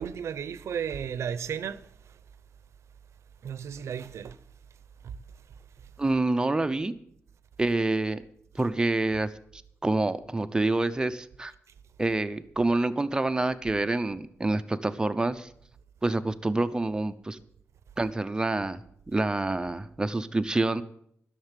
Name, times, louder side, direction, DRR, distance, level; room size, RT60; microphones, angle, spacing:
voice 1, 0.0-2.2 3.4-4.4 5.0-5.2 8.6-8.7, right 7 dB, 85° right, 0.6 m, -34 dB
voice 2, 6.0-6.9 7.6-8.2 8.5-11.5 12.0-15.5 16.0-17.4 18.0-20.8, right 2 dB, 15° right, 0.7 m, -27 dB
11.5 x 6.7 x 9.0 m
wide cardioid pair, 125°, 5 cm